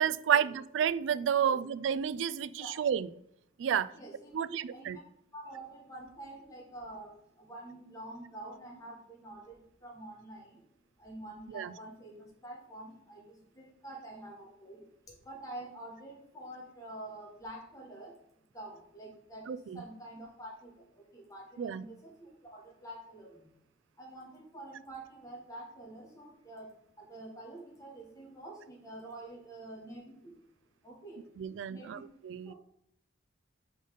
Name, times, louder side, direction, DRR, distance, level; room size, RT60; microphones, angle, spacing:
voice 1, 0.0-3.1 3.6-3.9 4.3-5.0 11.5-11.7 19.5-19.8 21.6-21.8 31.4-32.5, right 8 dB, 75° right, 18 dB, 0.3 m, -31 dB
voice 2, 2.4-2.8 3.7-5.0 5.3-10.7 11.0-18.2 18.5-23.5 24.0-30.3 30.8-31.2 31.7-32.1 32.4-32.5, right 1 dB, 20° left, -2 dB, 1.3 m, -47 dB
5.2 x 4.0 x 5.1 m, 0.74 s
head